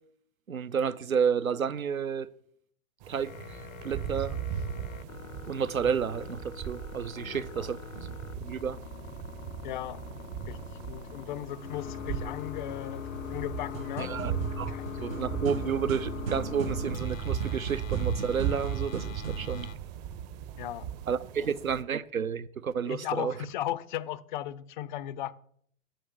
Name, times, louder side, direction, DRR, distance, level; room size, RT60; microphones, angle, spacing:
voice 1, 0.5-2.3 3.1-3.3 3.8-4.4 5.5-7.8 8.4-8.8 14.0-14.7 15.0-19.7 21.1-23.3, right 7 dB, 90° right, 0.5 m, -31 dB
sound 1, 3.0-21.8, right 8 dB, 30° right, 0.6 m, -37 dB
sound 2, 3.2-19.7, left 9 dB, 70° left, 0.7 m, -42 dB
voice 2, 7.2-7.7 9.6-10.0 10.5-10.6 10.9-13.0 13.3-14.2 14.7-15.2 20.6-20.9 21.4-21.5 22.8-25.3, left 12 dB, 40° left, 0.4 m, -37 dB
sound 3, 13.7-19.8, right 5 dB, 70° right, 1.0 m, -40 dB
8.9 x 4.9 x 6.8 m
figure-of-eight pair, 95°, 41 cm